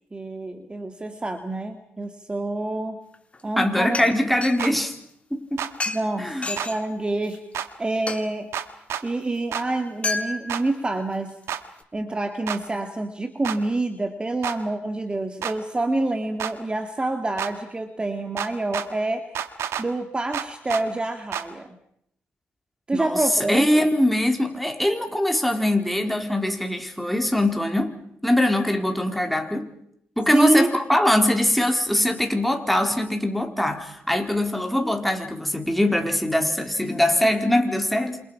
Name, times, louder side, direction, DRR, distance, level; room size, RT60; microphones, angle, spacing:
voice 1, 0.1-3.0 3.4-4.0 5.9-7.4 7.8-8.5 9.0-11.3 11.9-19.3 19.8-21.8 22.9-23.7 30.3-30.7, right 2 dB, 20° right, 6 dB, 2.3 m, -27 dB
sound 1, 3.1-3.4 3.9-4.5 5.8-6.0 6.4-6.8 7.3-7.4 8.1-8.2 10.0-10.7 11.3-11.4, left 3 dB, 25° left, 2.9 m, -29 dB
voice 2, 3.6-4.9 5.3-5.6 6.2-6.5 22.9-27.9 28.2-29.7 30.2-38.2, left 1 dB, ahead, 4 dB, 4.3 m, -22 dB
sound 2, 4.6-4.7 5.6-5.7 6.6-6.7 7.5-7.7 8.5-9.0 9.5-9.7 10.5-10.6 11.5-11.6 12.5-12.6 13.4-13.6 14.4-14.6 15.4-15.6 16.4-16.5 17.4-17.5 18.4-18.9 19.4-19.9 20.3-20.8 21.3-21.5, right 9 dB, 80° right, 1.9 m, -29 dB
28.0 x 27.0 x 5.8 m, 0.73 s
cardioid pair, 80°, 4 cm